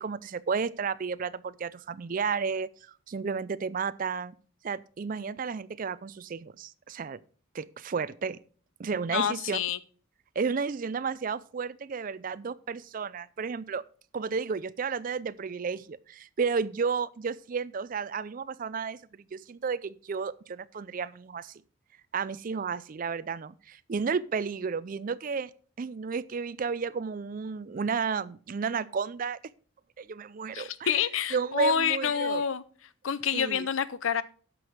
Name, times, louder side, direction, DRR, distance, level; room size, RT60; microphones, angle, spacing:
voice 1, 0.0-4.4 4.6-7.2 7.5-8.4 8.8-9.6 10.4-13.8 14.1-21.5 22.1-25.5 25.8-29.4 30.0-30.9 31.3-32.4 33.3-33.7, right 5 dB, 40° right, 0.4 m, -32 dB
voice 2, 9.1-9.8 30.5-32.6 33.0-34.2, left 7 dB, 70° left, 0.6 m, -28 dB
10.5 x 6.2 x 4.9 m
head